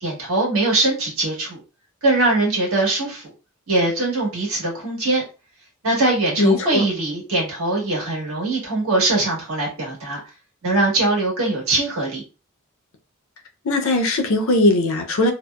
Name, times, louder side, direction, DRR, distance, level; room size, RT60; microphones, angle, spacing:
voice 1, 0.0-1.6 2.0-3.3 3.7-5.2 5.8-10.2 10.6-12.2, right 2 dB, 70° right, 1.3 m, -21 dB
voice 2, 6.4-6.8 13.6-15.3, left 2 dB, 65° left, 0.5 m, -19 dB
2.8 x 2.0 x 2.2 m
head